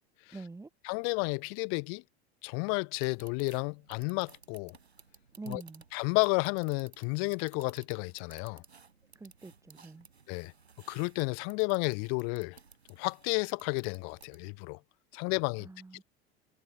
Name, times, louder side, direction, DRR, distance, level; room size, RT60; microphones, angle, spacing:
voice 1, 0.3-0.7 5.4-5.8 9.1-10.1 15.6-16.0, right 3 dB, 10° right, 1.4 m, -45 dB
voice 2, 0.8-2.0 2.4-4.8 5.5-5.6 5.9-8.6 10.3-10.5 10.9-12.6 13.0-14.8 15.1-15.7, left 40 dB or more, 45° left, 0.6 m, -32 dB
Computer Mouse Fast, 2.9-14.6, right 5 dB, 80° right, 3.6 m, -58 dB
figure-of-eight pair, 75°, 32 cm